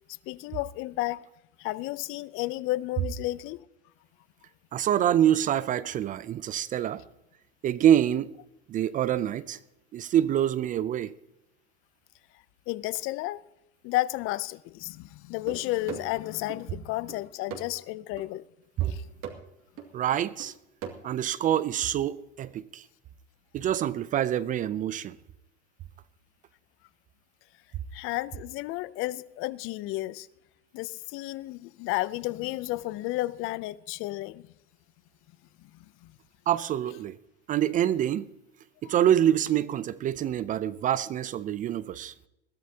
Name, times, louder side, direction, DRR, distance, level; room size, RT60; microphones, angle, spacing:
voice 1, 0.3-1.3 1.6-3.6 12.7-13.4 13.8-18.4 18.9-19.0 27.9-30.3 30.7-34.5 35.6-35.7 38.8-38.9, left 18 dB, 40° left, 0.5 m, -32 dB
voice 2, 4.7-7.0 7.6-8.3 8.7-9.6 9.9-11.1 18.8-18.9 19.9-20.5 21.0-22.9 23.5-25.2 36.5-37.2 37.5-38.3 38.8-42.1, right 11 dB, 25° right, 0.4 m, -26 dB
sound 1, 15.5-16.6 17.1-17.8 18.2-18.4 18.8-19.5 19.8-19.9 20.4-20.9, right 7 dB, 45° right, 2.2 m, -40 dB
21.0 x 13.5 x 2.8 m
hypercardioid pair, 110°, 32 cm